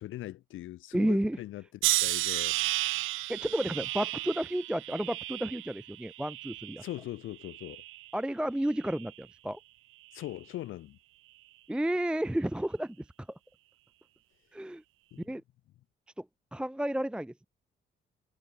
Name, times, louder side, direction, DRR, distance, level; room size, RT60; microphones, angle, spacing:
voice 1, 0.0-1.6 2.0-2.6 6.8-7.8 10.1-11.0 15.1-15.2, left 15 dB, 85° left, 2.3 m, -40 dB
voice 2, 0.9-1.4 3.3-6.8 8.1-9.6 11.7-13.4 14.5-14.8 15.2-15.4 16.2-16.3 16.5-17.5, right 1 dB, 5° right, 0.7 m, -31 dB
sound 1, 1.8-7.0 7.4-8.1 8.8-9.1, right 18 dB, 90° right, 0.6 m, -33 dB
cardioid pair, 90°, 20 cm